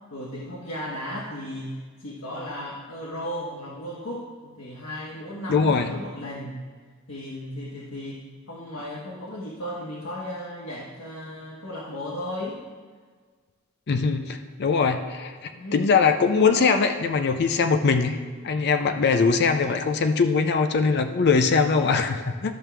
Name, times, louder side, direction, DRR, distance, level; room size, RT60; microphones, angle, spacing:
voice 1, 0.1-6.6 7.1-12.6 15.5-15.9, left 1 dB, 75° left, -5 dB, 1.2 m, -35 dB
voice 2, 5.5-5.9 13.9-18.2 18.4-22.5, left 5 dB, 55° left, 7 dB, 0.5 m, -22 dB
12.5 x 6.1 x 3.4 m, 1.5 s
head